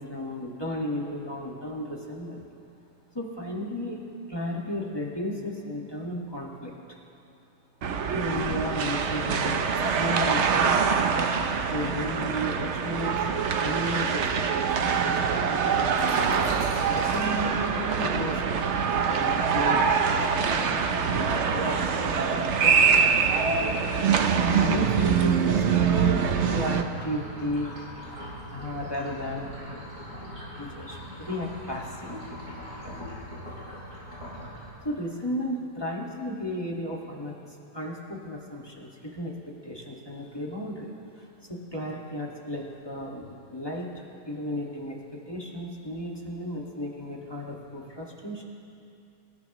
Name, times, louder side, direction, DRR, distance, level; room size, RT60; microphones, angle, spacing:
voice 1, 0.0-2.4 3.1-4.0 4.3-7.0 8.1-9.6 10.0-10.9 11.7-16.4 16.9-23.7 24.6-25.6 25.9-29.5 30.6-32.3 32.8-33.0 33.4-33.6 34.8-37.4 37.7-48.4, equal, 15° left, -3 dB, 1.6 m, -34 dB
sound 1, 7.8-26.8, right 6 dB, 75° right, 0.6 m, -24 dB
sound 2, 16.0-34.7, equal, 35° right, 4.8 m, -41 dB
26.5 x 14.0 x 3.1 m, 2.6 s
omnidirectional pair, 2.2 m